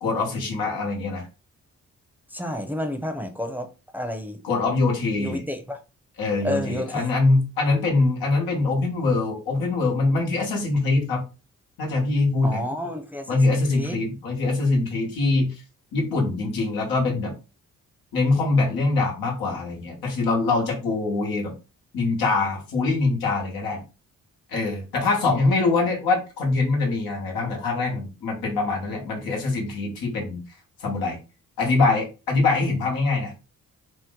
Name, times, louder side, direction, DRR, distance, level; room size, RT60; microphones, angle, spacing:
voice 1, 0.0-1.3 4.4-5.4 6.2-11.2 11.8-12.6 13.3-15.6 15.9-17.3 18.1-21.5 21.9-23.8 24.5-30.4 30.8-31.2 31.6-33.3, left 3 dB, 85° left, 1.1 m, -23 dB
voice 2, 2.3-4.4 5.2-5.8 6.4-7.1 12.4-14.0, left 1 dB, 5° right, 0.6 m, -30 dB
2.9 x 2.0 x 3.6 m
supercardioid pair, 50°, 35 cm